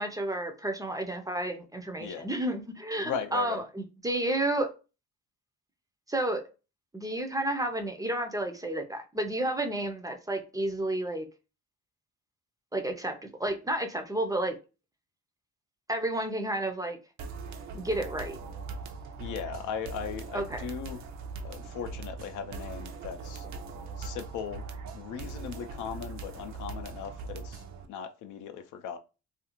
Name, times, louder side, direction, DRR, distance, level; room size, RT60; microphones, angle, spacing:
voice 1, 0.0-4.7 6.1-6.4 6.9-11.3 12.7-14.5 15.9-17.0 17.7-18.4 20.3-20.7, right 1 dB, 10° right, 0.4 m, -31 dB
voice 2, 3.0-3.6 19.2-21.0 21.4-23.4 24.0-24.6 24.9-27.6 27.9-29.0, left 7 dB, 80° left, 0.5 m, -38 dB
sound 1, 17.2-27.9, right 4 dB, 65° right, 0.5 m, -41 dB
2.5 x 2.4 x 2.9 m
cardioid pair, 90°, 30 cm